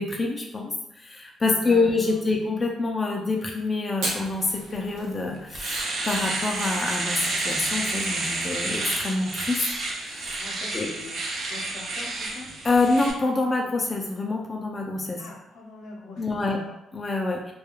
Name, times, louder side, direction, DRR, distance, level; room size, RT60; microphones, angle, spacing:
voice 1, 0.0-9.6 9.9-10.2 10.7-10.9 12.6-15.2 16.2-16.6 16.9-17.5, left 3 dB, 25° left, 0 dB, 0.4 m, -26 dB
voice 2, 1.5-2.4 10.4-11.2 11.5-12.5 15.2-16.8, left 3 dB, 80° left, -2 dB, 0.7 m, -43 dB
Fire, 3.9-13.1, right 1 dB, 90° right, 0.9 m, -42 dB
Domestic sounds home sounds, 4.9-5.0 5.4-13.1, right 2 dB, 55° right, 0.5 m, -30 dB
2.3 x 2.3 x 2.9 m, 0.87 s
cardioid pair, 90°, 0 cm